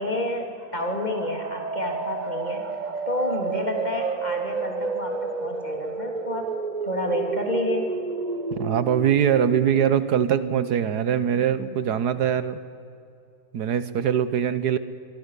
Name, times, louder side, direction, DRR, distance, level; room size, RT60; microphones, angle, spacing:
voice 1, 0.0-2.7 3.1-6.5 6.8-7.9, left 1 dB, 25° left, 2 dB, 3.4 m, -29 dB
sound 1, 0.6-12.3, right 4 dB, 30° right, 0.9 m, -32 dB
voice 2, 8.5-12.6 13.5-14.8, right 9 dB, 80° right, 13 dB, 1.5 m, -22 dB
25.0 x 24.0 x 6.8 m, 2.5 s
omnidirectional pair, 1.7 m